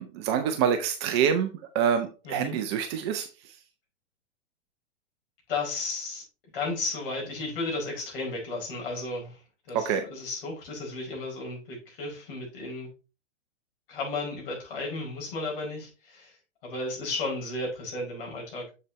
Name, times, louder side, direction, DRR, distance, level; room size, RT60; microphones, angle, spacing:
voice 1, 0.0-3.5 9.7-10.0, right 8 dB, 25° right, 6 dB, 0.6 m, -26 dB
voice 2, 2.2-2.6 5.5-6.2 6.5-9.4 9.7-12.9 13.9-16.4 16.6-18.7, left 3 dB, 50° left, -1 dB, 4.8 m, -34 dB
6.9 x 6.6 x 3.1 m, 0.31 s
figure-of-eight pair, 115°, 36 cm